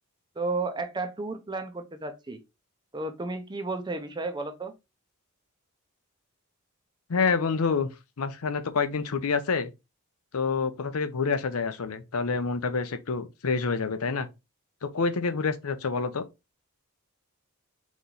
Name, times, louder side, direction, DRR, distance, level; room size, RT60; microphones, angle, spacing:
voice 1, 0.4-2.4 2.9-4.7, right 3 dB, 20° right, 0.6 m, -33 dB
voice 2, 7.1-7.9 8.2-9.7 10.3-14.3 14.8-16.2, left 5 dB, 75° left, 0.6 m, -27 dB
4.0 x 3.1 x 3.7 m
head